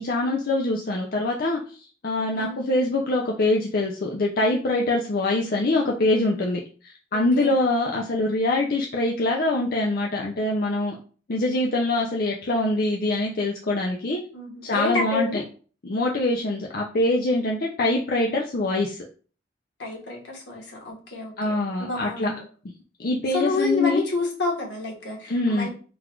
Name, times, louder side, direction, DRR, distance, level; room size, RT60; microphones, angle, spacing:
voice 1, 0.0-11.0 11.3-14.2 14.6-15.4 15.8-19.0 21.4-22.3 23.0-24.0 25.3-25.7, left 2 dB, 55° left, -1 dB, 0.6 m, -24 dB
voice 2, 14.3-15.4 19.8-22.4 23.3-25.7, left 2 dB, 80° left, -1 dB, 1.5 m, -29 dB
3.9 x 2.5 x 4.4 m, 0.39 s
head